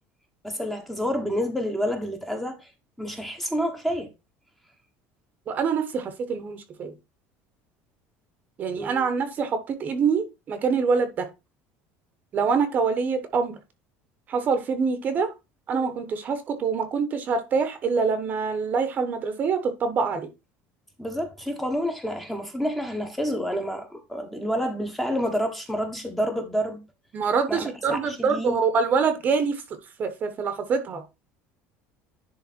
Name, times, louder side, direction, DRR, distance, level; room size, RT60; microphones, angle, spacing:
voice 1, 0.4-2.7 3.0-4.1 8.8-9.1 21.0-26.8 27.5-28.6, equal, 5° left, 1.2 m, -29 dB
voice 2, 5.5-6.9 8.6-11.3 12.3-13.6 14.3-15.3 15.7-20.3 27.1-29.6 30.0-31.0, right 5 dB, 30° right, 1.1 m, -25 dB
10.5 x 3.6 x 4.4 m
cardioid pair, 170°, 6 cm